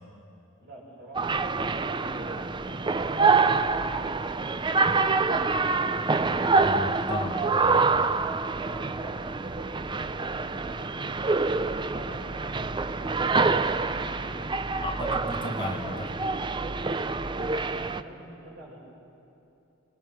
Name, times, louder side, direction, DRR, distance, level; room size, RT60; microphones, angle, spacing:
voice 1, 0.6-5.6 8.5-10.9 11.8-14.4 17.6-18.8, right 1 dB, 55° right, -5 dB, 7.2 m, -47 dB
sound 1, 1.1-18.0, right 4 dB, 20° right, 0.5 m, -26 dB
voice 2, 6.2-7.7 14.8-16.2, left 1 dB, 25° left, 1 dB, 1.7 m, -35 dB
28.5 x 19.0 x 5.8 m, 2.8 s
head